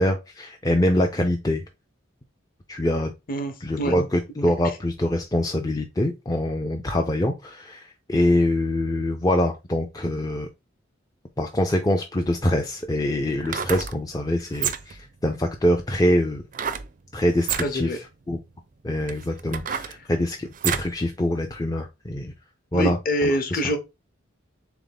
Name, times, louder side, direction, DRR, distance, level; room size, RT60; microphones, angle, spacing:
voice 1, 0.0-1.6 2.7-3.1 3.6-10.5 11.4-16.4 17.1-18.0 18.3-18.4 18.8-22.3 22.7-23.8, left 1 dB, 20° left, 0.4 m, -24 dB
voice 2, 3.3-3.9 17.6-18.0 22.7-23.8, equal, 45° left, 0.9 m, -25 dB
sound 1, 12.2-12.3 13.3-14.0 14.5-15.1 16.5-16.9 17.4-17.7 18.4-18.5 19.1-21.0 21.4-21.5, right 8 dB, 40° right, 0.4 m, -29 dB
3.5 x 3.5 x 3.9 m
head